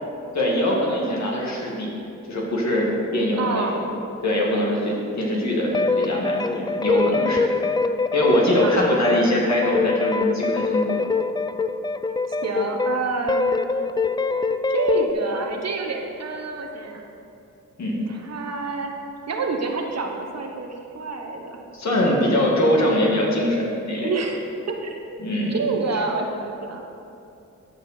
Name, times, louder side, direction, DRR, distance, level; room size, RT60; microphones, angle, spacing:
voice 1, 0.3-1.9 2.3-3.8 4.2-7.4 8.1-11.1 17.8-18.1 21.7-24.1 25.2-25.6, left 1 dB, 60° left, -3 dB, 2.1 m, -22 dB
voice 2, 3.4-3.8 8.6-8.8 12.3-13.5 14.7-17.0 18.1-18.9 19.3-21.6 24.0-24.4 24.7-25.2 25.5-27.1, right 4 dB, 55° right, 2 dB, 1.1 m, -28 dB
sound 1, 5.7-13.0 13.3-15.1, left 3 dB, 15° left, 0.3 m, -23 dB
13.5 x 5.2 x 4.3 m, 2.7 s
cardioid pair, 60°, 31 cm